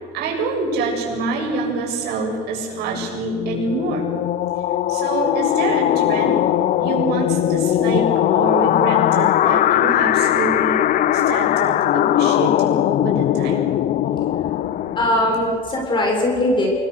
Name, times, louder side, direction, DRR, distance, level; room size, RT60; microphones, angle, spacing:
voice 1, 0.1-4.1 4.9-6.4 6.8-10.8 11.1-13.6 14.7-15.0, right 3 dB, 70° right, 0 dB, 7.4 m, -26 dB
sound 1, 2.9-15.5, left 12 dB, 50° left, 0.6 m, -19 dB
voice 2, 15.0-16.7, left 1 dB, 25° left, -1 dB, 7.1 m, -20 dB
29.0 x 21.5 x 6.7 m, 2.2 s
cardioid pair, 125°, 18 cm